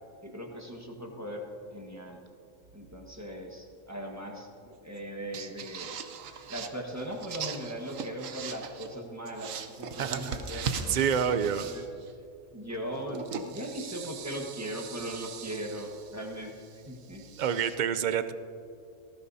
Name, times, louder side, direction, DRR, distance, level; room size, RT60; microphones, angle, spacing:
voice 1, 0.2-2.2 2.7-6.0 6.3-11.8 12.5-17.3, equal, 15° right, 0 dB, 1.4 m, -39 dB
sound 1, 2.6-3.2 5.0-5.1 5.3-9.0 9.3-12.1 12.9-17.8, right 6 dB, 85° right, 1.2 m, -40 dB
voice 2, 10.0-11.7 17.4-18.3, right 8 dB, 55° right, 12 dB, 0.5 m, -28 dB
18.5 x 15.0 x 2.7 m, 2.6 s
omnidirectional pair, 1.3 m